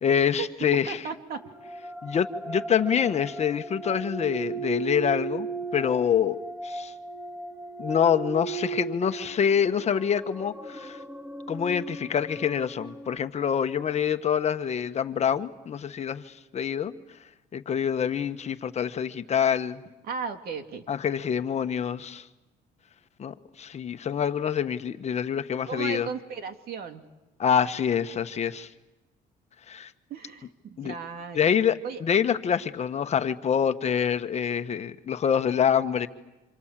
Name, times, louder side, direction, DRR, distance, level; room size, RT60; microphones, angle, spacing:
voice 1, 0.0-1.0 2.0-5.5 5.7-6.9 7.8-11.0 11.5-16.9 17.5-19.8 20.9-22.3 23.2-26.1 27.4-28.7 29.7-29.9 30.8-31.0 31.3-36.1, left 8 dB, 40° left, 1.3 m, -26 dB
voice 2, 0.9-1.4 20.0-20.8 25.7-27.0 30.1-32.0, right 5 dB, 65° right, 2.6 m, -36 dB
sound 1, 1.4-13.2, right 4 dB, 10° right, 1.6 m, -37 dB
29.5 x 27.0 x 7.5 m
cardioid pair, 110°, 17 cm